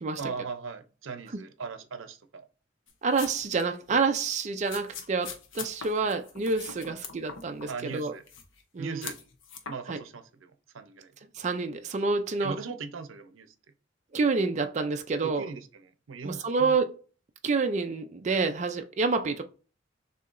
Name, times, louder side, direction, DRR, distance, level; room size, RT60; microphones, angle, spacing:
voice 1, 0.2-2.5 6.9-7.0 7.7-8.2 8.8-9.2 9.7-11.1 12.4-13.5 15.2-16.8, right 4 dB, 90° right, 0.6 m, -39 dB
sound 1, 2.9-3.6 3.9-4.0 4.7-7.7 7.9-8.6 9.0-9.7, left 6 dB, 85° left, 0.8 m, -42 dB
voice 2, 3.0-8.1 8.7-9.1 9.9-10.0 11.4-12.6 14.1-15.4 16.2-16.9 17.4-19.4, right 4 dB, 35° right, 0.4 m, -28 dB
6.7 x 2.8 x 2.5 m
head